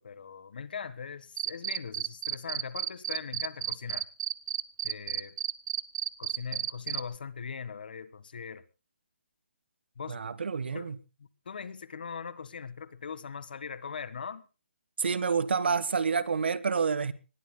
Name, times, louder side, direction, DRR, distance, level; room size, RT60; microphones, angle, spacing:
voice 1, 0.0-4.1 4.8-5.4 6.2-8.6 10.0-10.2 10.7-10.9 11.2-14.5, left 6 dB, 55° left, 1.5 m, -40 dB
Cricket, 1.4-7.0, right 11 dB, 25° right, 0.8 m, -31 dB
voice 2, 10.1-11.0 15.0-17.1, right 5 dB, 65° right, 1.4 m, -28 dB
24.0 x 20.0 x 2.2 m
hypercardioid pair, 170°, 6 cm